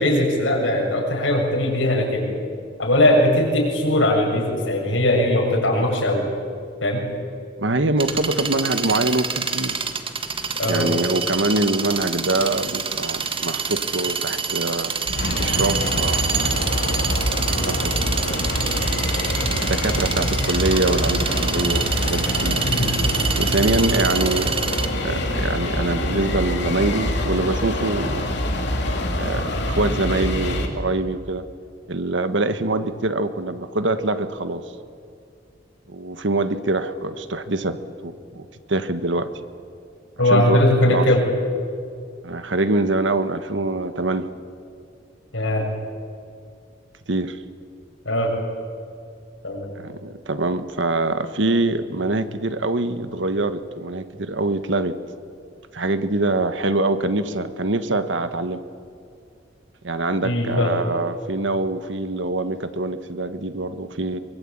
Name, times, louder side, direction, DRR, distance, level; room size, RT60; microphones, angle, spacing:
voice 1, 0.0-2.3 2.8-6.3 6.8-7.0 10.6-11.0 22.6-22.9 23.7-23.8 40.2-41.2 45.3-45.7 48.0-48.3 49.4-49.7 60.2-60.8, left 1 dB, 80° left, -1 dB, 7.0 m, -20 dB
voice 2, 7.6-9.8 10.7-14.9 15.4-17.0 17.6-18.5 19.4-22.6 23.4-24.6 25.0-28.4 29.1-31.4 31.9-34.6 35.9-37.8 38.0-39.3 40.2-41.1 42.2-44.3 47.1-47.4 49.8-55.0 55.7-58.6 59.8-64.2, right 2 dB, 70° right, 11 dB, 1.4 m, -24 dB
sound 1, 8.0-24.9, right 6 dB, 30° right, 1.5 m, -26 dB
sound 2, 15.1-30.7, left 1 dB, 60° left, 3.0 m, -25 dB
23.5 x 22.5 x 8.7 m, 2.3 s
head